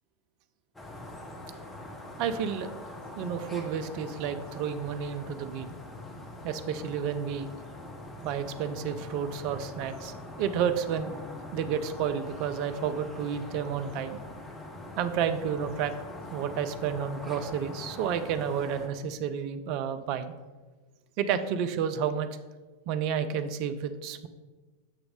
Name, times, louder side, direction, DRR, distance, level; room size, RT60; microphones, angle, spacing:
sound 1, 0.7-18.9, left 1 dB, 10° left, 0.9 m, -43 dB
voice 1, 2.2-2.7 3.2-5.7 6.4-7.5 8.2-11.1 11.5-14.2 15.0-15.9 16.3-20.3 21.2-22.3 22.9-24.3, right 8 dB, 45° right, 10 dB, 0.4 m, -31 dB
7.4 x 3.0 x 4.9 m, 1.3 s
figure-of-eight pair, 90°, 0 cm